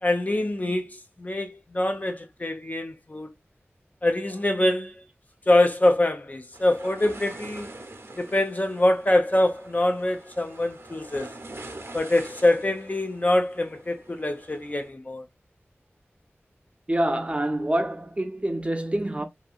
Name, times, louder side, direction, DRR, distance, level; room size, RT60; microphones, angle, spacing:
voice 1, 0.0-3.3 4.0-4.9 5.5-7.7 8.2-11.3 11.9-15.2, left 1 dB, 35° left, 0.5 m, -24 dB
sound 1, 6.5-14.9, right 2 dB, 60° right, 0.8 m, -44 dB
voice 2, 16.9-19.3, right 1 dB, 25° right, 0.6 m, -26 dB
2.8 x 2.6 x 2.4 m
wide cardioid pair, 65°, 5 cm